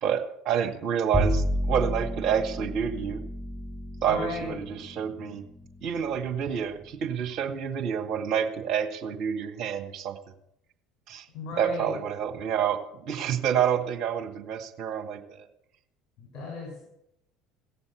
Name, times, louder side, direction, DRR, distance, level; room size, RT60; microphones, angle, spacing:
voice 1, 0.0-3.2 4.0-5.4 5.8-10.2 11.1-11.3 11.6-15.5, right 8 dB, 45° right, 2 dB, 2.0 m, -28 dB
Bowed string instrument, 1.1-7.6, left 1 dB, 10° left, 2.2 m, -32 dB
voice 2, 4.1-4.6 11.3-11.9 16.2-16.8, left 3 dB, 45° left, -2 dB, 6.0 m, -35 dB
17.0 x 6.9 x 8.3 m, 0.78 s
figure-of-eight pair, 65°, 0 cm